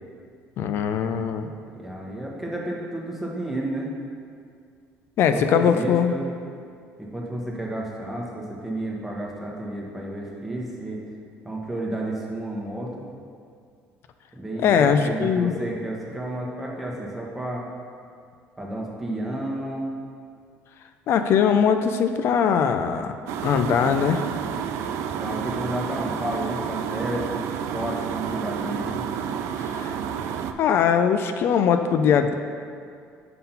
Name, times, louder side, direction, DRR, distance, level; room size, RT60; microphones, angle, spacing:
voice 1, 0.6-1.5 5.2-6.1 14.6-15.6 21.1-23.1 23.4-24.2 29.6-29.9 30.6-32.4, left 7 dB, 60° left, 8 dB, 0.4 m, -21 dB
voice 2, 1.7-3.9 5.3-6.3 7.0-11.0 11.4-13.1 14.3-17.7 18.6-19.9 25.2-29.1, right 1 dB, 5° right, -3 dB, 1.2 m, -31 dB
sound 1, 23.3-30.5, right 8 dB, 75° right, 0.3 m, -30 dB
5.8 x 3.7 x 5.6 m, 2.3 s
cardioid pair, 110°, 5 cm